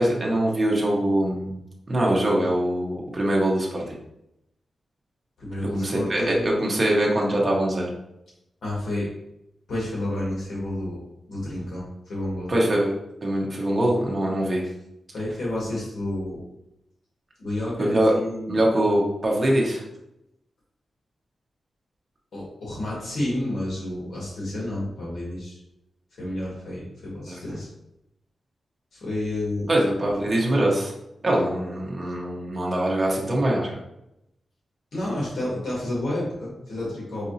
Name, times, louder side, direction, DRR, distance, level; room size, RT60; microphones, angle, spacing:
voice 1, 0.0-1.6 1.9-4.0 5.7-7.9 12.5-12.9 13.2-14.6 17.8-18.1 18.5-19.8 27.3-27.4 29.7-30.9 31.2-33.8, right 1 dB, 30° right, -3 dB, 0.9 m, -23 dB
voice 2, 5.4-6.6 8.6-9.1 9.7-12.5 15.1-16.4 17.4-18.6 22.3-25.6 26.2-27.7 28.9-29.7 34.9-37.3, left 1 dB, 70° left, -6 dB, 1.5 m, -30 dB
4.7 x 2.7 x 2.6 m, 0.84 s
wide cardioid pair, 150°, 0 cm